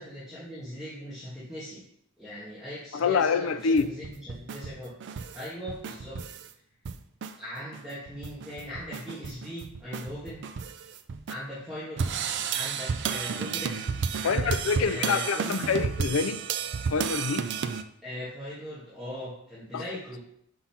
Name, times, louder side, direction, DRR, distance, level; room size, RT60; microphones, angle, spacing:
voice 1, 0.0-1.8 2.2-4.9 5.3-6.2 7.4-10.4 11.3-12.1 12.5-13.8 14.2-15.7 18.0-20.2, equal, ahead, 1.8 m, -39 dB
voice 2, 2.9-3.9 14.2-16.4 16.9-17.5 19.7-19.8, left 5 dB, 80° left, 0.5 m, -26 dB
sound 1, 3.6-6.5 6.9-7.3 7.7-11.3 12.0-17.8, right 6 dB, 60° right, 0.4 m, -32 dB
5.6 x 3.8 x 5.8 m
head